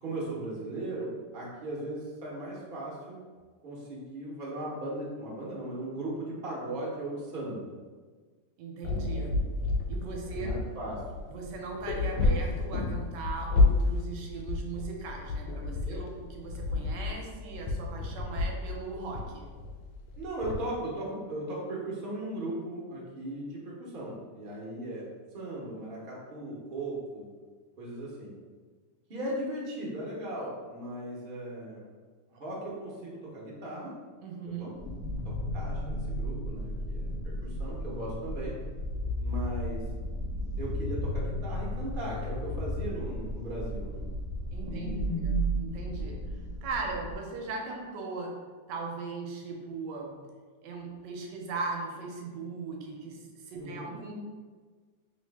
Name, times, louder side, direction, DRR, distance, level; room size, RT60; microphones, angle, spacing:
voice 1, 0.0-3.2 3.6-7.7 10.3-11.0 15.9-16.0 20.2-25.1 25.3-27.3 27.8-28.3 29.1-31.8 32.4-33.9 34.6-34.7 35.2-38.6 39.2-39.8 40.6-44.1 44.7-45.4 53.6-53.9, right 1 dB, 50° right, -5 dB, 0.6 m, -37 dB
voice 2, 8.6-9.4 9.9-10.6 11.3-19.5 34.2-34.8 44.5-46.2 46.6-48.4 48.7-50.2 50.6-54.1, right 4 dB, 75° right, 1 dB, 1.2 m, -38 dB
sound 1, 8.8-20.5, left 3 dB, 90° left, 1.3 m, -30 dB
sound 2, 34.8-47.2, equal, 70° left, 0.8 m, -34 dB
3.1 x 2.6 x 3.3 m, 1.5 s
omnidirectional pair, 1.9 m